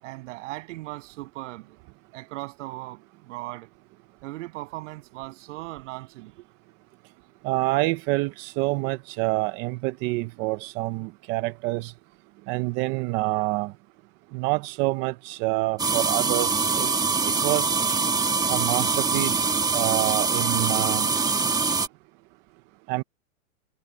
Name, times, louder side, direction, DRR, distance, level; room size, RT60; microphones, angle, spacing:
voice 1, 0.0-1.8 2.1-3.7 4.2-6.4, right 19 dB, 55° right, 7.1 m, -38 dB
voice 2, 7.4-11.9 12.5-13.7 14.3-16.9 17.2-17.8 18.5-21.1 22.9-23.0, right 21 dB, 25° right, 0.5 m, -27 dB
sound 1, 15.8-21.9, right 4 dB, 10° right, 1.1 m, -24 dB
supercardioid pair, 145°, 42 cm